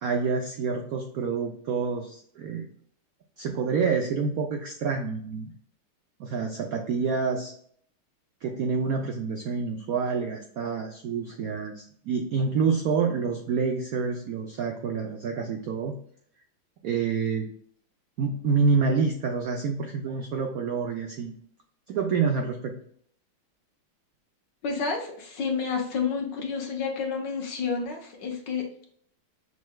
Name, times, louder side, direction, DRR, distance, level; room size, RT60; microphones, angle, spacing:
voice 1, 0.0-2.7 3.4-5.5 6.2-7.5 8.4-16.0 16.8-17.5 18.2-21.3 21.9-22.8, right 5 dB, 85° right, 3 dB, 0.7 m, -27 dB
voice 2, 24.6-28.8, left 5 dB, 60° left, 2 dB, 1.6 m, -30 dB
6.7 x 3.2 x 2.3 m, 0.62 s
omnidirectional pair, 2.3 m